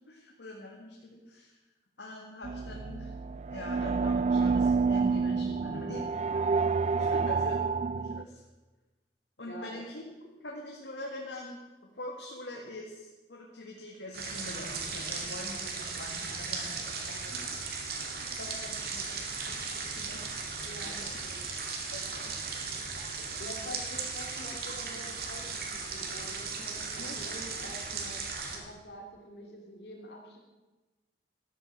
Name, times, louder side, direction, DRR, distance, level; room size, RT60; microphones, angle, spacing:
voice 1, 0.0-1.5 2.0-3.1 3.5-6.4 7.0-7.6 7.9-8.4 9.4-10.0 10.4-11.6 12.0-17.6 18.2-21.2 21.9-22.4 27.0-27.2, left 1 dB, 90° left, -1 dB, 2.1 m, -44 dB
sound 1, 2.4-8.2, right 4 dB, 40° right, 0.4 m, -28 dB
voice 2, 6.9-7.3 9.4-9.8 17.1-17.4 20.6-21.6 22.5-22.6 23.0-30.4, equal, 70° left, 0 dB, 2.5 m, -47 dB
sound 2, 14.1-28.6, right 4 dB, 55° right, 2.5 m, -37 dB
13.0 x 10.5 x 7.4 m, 1.2 s
head